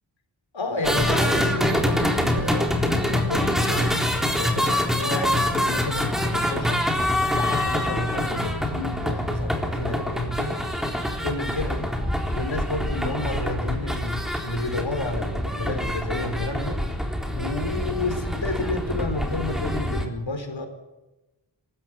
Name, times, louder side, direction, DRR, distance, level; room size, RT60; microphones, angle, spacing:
voice 1, 0.5-6.8 7.3-10.6 11.2-11.9 12.3-16.8 17.3-20.7, left 2 dB, 70° left, 6 dB, 4.5 m, -31 dB
sound 1, 0.8-20.1, left 1 dB, ahead, 3.8 m, -25 dB
24.0 x 13.5 x 9.4 m, 1.0 s
wide cardioid pair, 65°, 47 cm